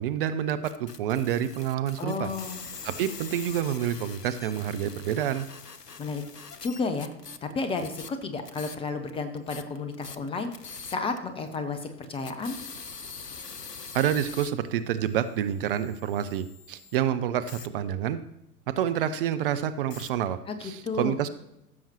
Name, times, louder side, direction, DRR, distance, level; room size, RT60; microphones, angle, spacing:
voice 1, 0.0-2.3 2.8-5.5 13.9-18.2 18.7-21.3, right 10 dB, 40° right, 11 dB, 0.5 m, -28 dB
sound 1, 0.6-9.1 9.4-11.2 11.5-11.6 12.0-17.0 17.5-17.7 19.9-20.1, left 5 dB, 90° left, 0.7 m, -44 dB
voice 2, 2.0-2.6 6.0-6.2 6.6-7.1 7.4-10.5 10.8-12.6 20.5-20.6 20.8-21.2, left 4 dB, 10° left, 8 dB, 0.5 m, -32 dB
15.0 x 7.2 x 2.9 m, 0.87 s
figure-of-eight pair, 90°, 46 cm